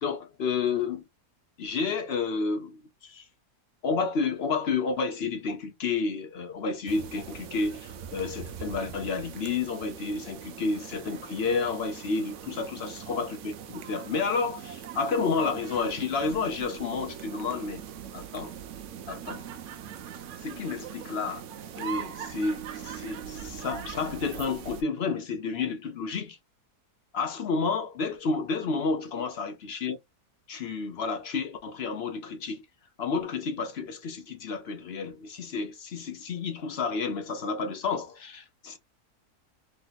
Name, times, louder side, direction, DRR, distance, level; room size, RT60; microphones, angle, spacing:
voice 1, 0.0-1.0 1.6-3.2 3.8-17.8 18.1-18.6 19.1-19.4 20.4-21.4 21.8-26.4 27.1-30.0 30.5-32.6 33.0-38.8, left 4 dB, 55° left, 0.8 m, -30 dB
sound 1, 6.9-24.8, right 8 dB, 65° right, 0.8 m, -41 dB
3.2 x 2.7 x 4.0 m
omnidirectional pair, 1.7 m